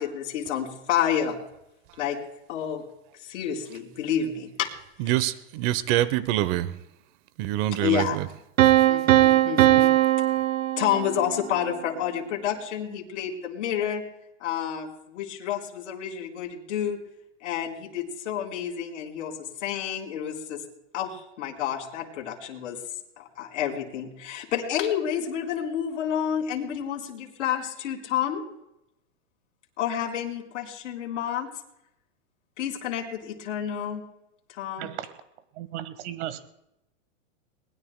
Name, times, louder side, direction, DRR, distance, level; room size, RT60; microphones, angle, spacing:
voice 1, 0.0-1.4 2.0-2.2 2.5-2.8 3.2-4.7 5.1-5.3 7.8-8.2 8.9-9.9 10.8-14.1 14.4-17.0 17.4-20.6 20.9-22.8 23.2-28.4 29.8-31.5 32.6-34.0 34.6-34.9, left 9 dB, 70° left, 0 dB, 3.9 m, -29 dB
voice 2, 5.0-6.7 7.4-8.0, right 14 dB, 45° right, 16 dB, 0.9 m, -25 dB
Piano, 8.6-11.5, right 14 dB, 90° right, 0.9 m, -20 dB
voice 3, 34.8-35.1 35.5-36.4, right 12 dB, 60° right, 11 dB, 1.5 m, -35 dB
22.5 x 20.0 x 2.2 m, 0.84 s
hypercardioid pair, 135°, 38 cm